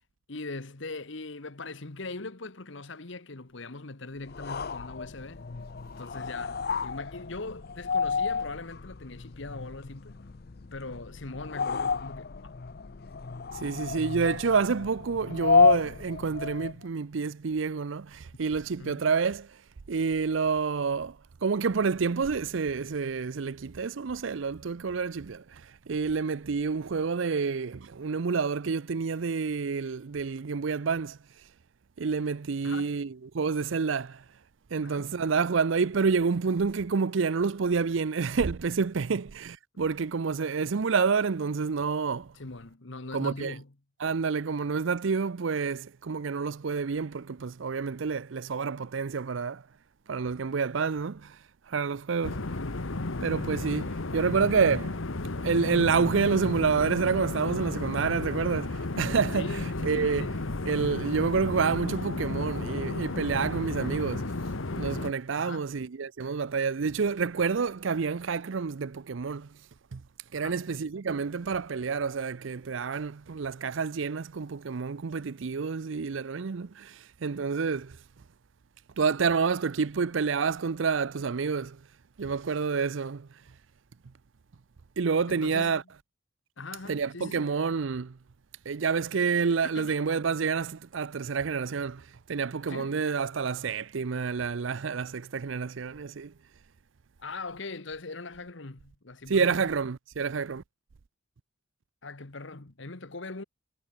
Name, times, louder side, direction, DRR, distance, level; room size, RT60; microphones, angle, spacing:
voice 1, 0.3-5.4 6.0-10.2 10.7-12.5 18.8-19.1 32.6-32.9 34.8-35.1 42.3-43.7 59.3-60.4 65.4-65.7 70.3-70.6 85.3-85.8 86.6-87.5 89.6-90.0 92.7-93.0 97.2-99.7 102.0-103.4, left 3 dB, 65° left, 1.4 m, -41 dB
sound 1, 4.3-16.8, left 5 dB, 50° left, 0.6 m, -30 dB
voice 2, 13.6-19.5 19.9-31.2 32.0-34.2 34.7-42.3 43.1-43.5 44.0-49.6 50.1-51.4 51.7-52.4 53.2-55.0 55.4-60.3 60.7-64.3 64.7-69.5 69.9-70.0 70.3-78.0 79.0-81.8 82.2-83.3 85.0-85.8 86.9-88.2 88.7-96.3 99.3-100.6, right 5 dB, 70° right, 0.5 m, -28 dB
sound 2, 52.2-65.1, left 2 dB, 80° left, 1.3 m, -33 dB
head